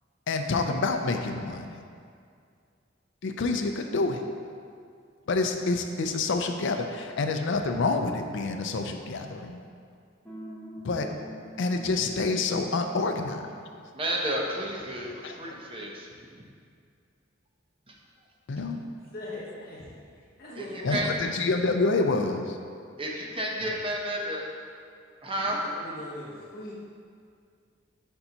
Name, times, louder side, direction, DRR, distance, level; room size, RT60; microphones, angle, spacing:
voice 1, 0.3-1.8 3.2-4.2 5.3-9.6 10.8-11.1 11.6-13.4 15.2-15.6 18.5-18.8 20.8-22.6, left 3 dB, 65° left, 5 dB, 0.5 m, -27 dB
sound 1, 10.2-13.4, equal, 10° left, 1.4 m, -44 dB
voice 2, 13.9-16.1 17.9-18.0 20.6-21.1 23.0-23.1 23.4-24.4 25.2-25.6, right 1 dB, 25° right, -1 dB, 0.7 m, -31 dB
voice 3, 19.1-21.0 25.3-26.7, left 1 dB, 50° left, -7 dB, 1.2 m, -41 dB
6.8 x 5.4 x 2.9 m, 2.3 s
head